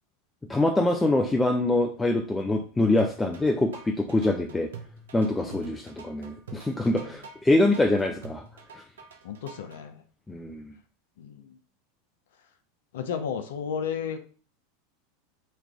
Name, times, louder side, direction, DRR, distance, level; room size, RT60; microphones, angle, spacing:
voice 1, 0.5-4.7 5.1-8.4 8.7-8.8 10.3-10.8, left 2 dB, 10° left, 3 dB, 0.4 m, -24 dB
sound 1, 3.0-9.8, right 5 dB, 80° right, 0.5 m, -46 dB
voice 2, 9.2-10.0 11.2-11.6 12.9-14.2, left 7 dB, 70° left, 7 dB, 0.5 m, -33 dB
3.3 x 2.3 x 3.4 m, 0.40 s
hypercardioid pair, 90°, 0 cm